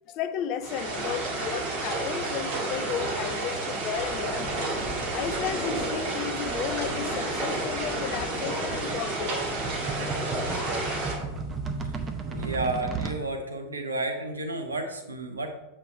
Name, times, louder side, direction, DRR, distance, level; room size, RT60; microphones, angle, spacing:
voice 1, 0.1-4.6 5.1-9.7, left 9 dB, 40° left, 10 dB, 0.5 m, -34 dB
sound 1, 0.6-11.2, right 2 dB, 45° right, 1.8 m, -31 dB
sound 2, 3.9-12.8, left 1 dB, 5° left, 2.3 m, -38 dB
sound 3, 7.6-13.2, right 4 dB, 20° right, 0.8 m, -35 dB
voice 2, 12.2-15.5, right 2 dB, 75° right, 4 dB, 1.1 m, -31 dB
7.6 x 4.4 x 4.6 m, 0.95 s
figure-of-eight pair, 90°, 0 cm